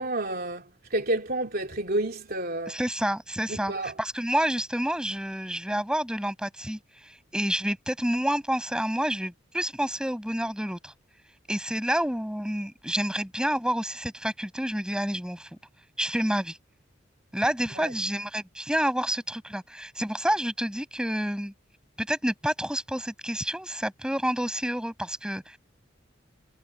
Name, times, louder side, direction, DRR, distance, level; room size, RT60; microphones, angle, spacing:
voice 1, 0.0-2.8 3.5-4.0 17.7-17.9, right 1 dB, 50° right, 3.1 m, -30 dB
voice 2, 2.7-10.9 11.5-15.5 16.0-16.6 17.3-21.5 22.0-25.6, equal, 5° right, 6.8 m, -29 dB
head